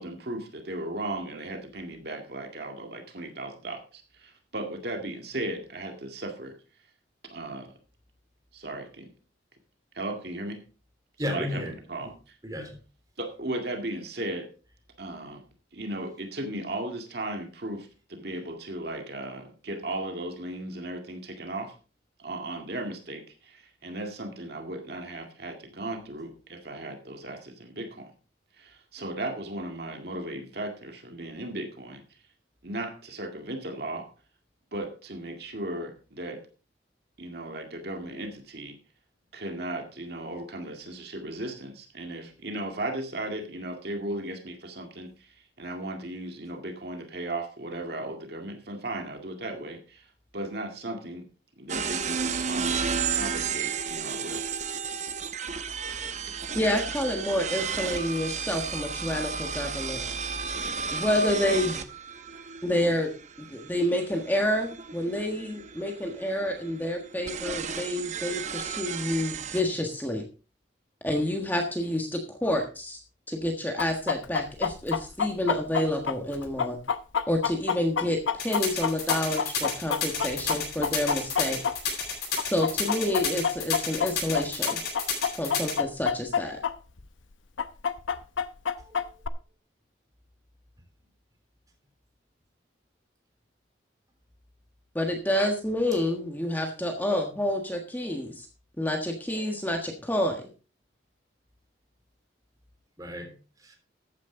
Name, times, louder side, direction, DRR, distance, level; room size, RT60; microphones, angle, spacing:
voice 1, 0.0-6.6 7.3-7.8 8.5-9.1 9.9-10.6 11.2-11.6 11.9-12.1 13.2-14.5 15.0-15.4 15.7-21.7 22.2-28.1 28.5-32.2 32.6-34.1 34.7-36.4 37.2-38.8 39.3-51.3 51.6-54.4 56.3-56.4, right 1 dB, 55° right, 4 dB, 2.0 m, -36 dB
voice 2, 11.2-11.8 12.0-12.1 12.4-12.8 88.7-89.3 103.0-103.7, left 1 dB, 20° right, 3 dB, 3.5 m, -35 dB
sound 1, 51.7-69.6, right 6 dB, 40° right, 0.9 m, -33 dB
voice 3, 56.5-60.0 60.9-61.8 62.6-63.1 63.5-70.2 71.0-73.0 73.3-76.8 77.3-81.6 82.4-84.8 85.4-86.6 94.9-98.5 98.8-100.4, left 1 dB, 10° left, 3 dB, 1.4 m, -28 dB
Chicken rooster, 73.8-82.1 82.4-86.7 87.0-87.1 87.6-89.3, left 7 dB, 90° left, 0.9 m, -27 dB
sound 2, 78.4-85.7, left 5 dB, 55° left, 7.9 m, -30 dB
14.0 x 9.5 x 3.8 m, 0.35 s
head